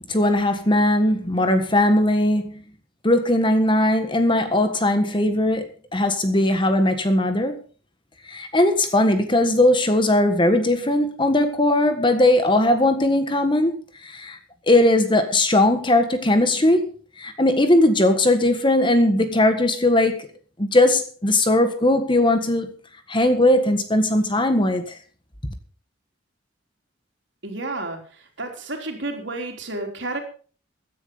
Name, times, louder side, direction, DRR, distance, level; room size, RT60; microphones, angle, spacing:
voice 1, 0.1-2.6 3.0-7.6 8.3-13.8 14.0-14.4 14.7-16.9 17.2-20.3 20.6-22.7 23.1-24.8, left 1 dB, 25° left, 1.5 m, -19 dB
voice 2, 27.4-28.0 28.4-30.2, right 2 dB, 65° right, 3.8 m, -30 dB
15.5 x 10.5 x 5.4 m
head